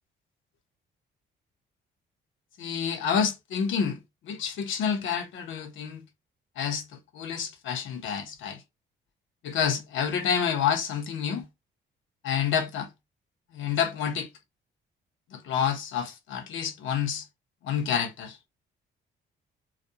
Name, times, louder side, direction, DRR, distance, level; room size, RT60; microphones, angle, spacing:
voice 1, 2.6-6.0 6.6-8.6 9.4-11.5 12.2-12.9 13.5-14.3 15.3-17.3 17.6-18.4, left 7 dB, 80° left, 0.7 m, -28 dB
2.4 x 2.2 x 2.7 m
cardioid pair, 90°, 20 cm